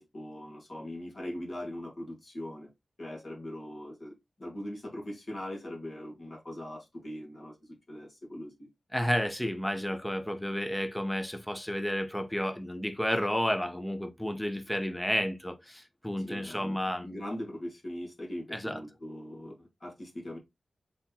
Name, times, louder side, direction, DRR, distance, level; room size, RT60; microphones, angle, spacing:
voice 1, 0.0-2.7 3.0-8.7 16.2-20.4, left 1 dB, 40° left, 1.7 m, -41 dB
voice 2, 8.9-17.1 18.5-18.8, equal, 5° left, 0.7 m, -31 dB
4.2 x 3.5 x 2.8 m
wide cardioid pair, 125°, 0 cm